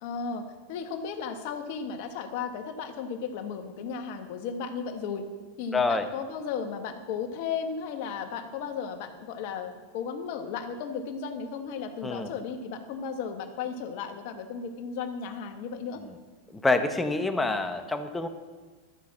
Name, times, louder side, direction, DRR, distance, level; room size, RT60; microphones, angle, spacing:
voice 1, 0.0-5.3 5.6-16.0, left 6 dB, 60° left, 6 dB, 1.4 m, -35 dB
voice 2, 5.7-6.1 12.0-12.3 16.0-16.1 16.5-18.3, left 3 dB, 10° left, 8 dB, 1.0 m, -27 dB
12.5 x 6.3 x 7.4 m, 1.4 s
hypercardioid pair, 110°, 0 cm